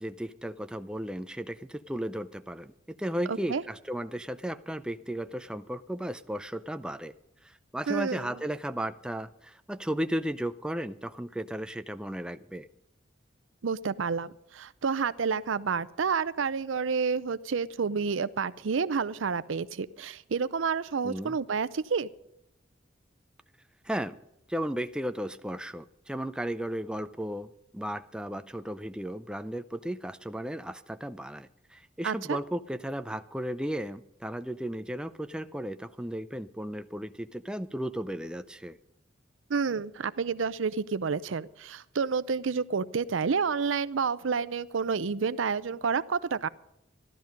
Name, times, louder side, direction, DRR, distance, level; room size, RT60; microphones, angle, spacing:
voice 1, 0.0-7.1 7.4-12.7 21.0-21.4 23.8-24.1 24.5-38.8, right 1 dB, 5° right, 10 dB, 0.4 m, -35 dB
voice 2, 3.3-3.6 7.9-8.3 13.6-22.1 32.0-32.4 39.5-46.5, right 5 dB, 85° right, 16 dB, 0.5 m, -29 dB
15.0 x 12.0 x 5.2 m, 0.82 s
head